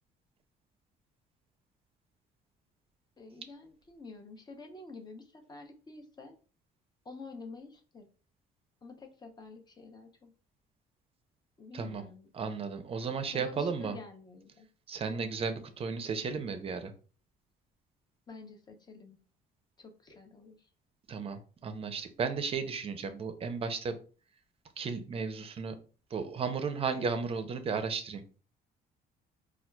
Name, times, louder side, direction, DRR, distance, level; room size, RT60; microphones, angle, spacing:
voice 1, 3.2-6.4 7.0-8.1 8.8-10.3 11.6-12.3 13.3-14.7 18.3-19.2 19.8-20.7, left 3 dB, 25° left, 5 dB, 0.6 m, -49 dB
voice 2, 11.7-12.0 12.3-14.0 14.9-16.9 21.1-24.0 24.8-25.8 26.1-28.4, right 5 dB, 35° right, 9 dB, 0.5 m, -34 dB
4.2 x 2.3 x 2.2 m, 0.37 s
cardioid pair, 110°, 17 cm